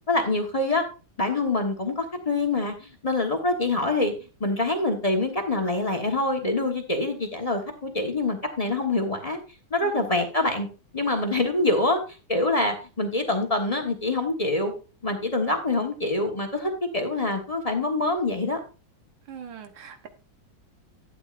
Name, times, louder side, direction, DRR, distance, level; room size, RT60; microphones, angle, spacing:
voice 1, 0.1-0.8 1.2-4.1 4.4-9.4 9.7-10.7 10.9-12.0 12.3-14.7 15.0-18.6, left 2 dB, 25° left, 5 dB, 1.0 m, -25 dB
voice 2, 19.3-20.1, right 8 dB, 75° right, 7 dB, 1.8 m, -41 dB
11.5 x 9.1 x 2.5 m, 0.33 s
omnidirectional pair, 2.2 m